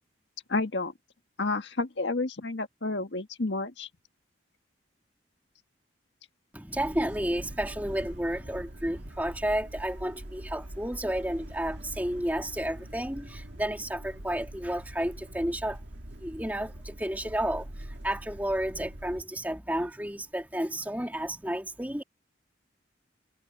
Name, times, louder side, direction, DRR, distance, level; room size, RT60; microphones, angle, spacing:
voice 1, 0.5-0.9 1.4-3.9, left 3 dB, 70° left, 1.6 m, -30 dB
voice 2, 6.5-15.8 16.2-22.0, right 1 dB, 10° right, 2.6 m, -32 dB
sound 1, 6.7-19.2, right 1 dB, 70° right, 2.0 m, -43 dB
head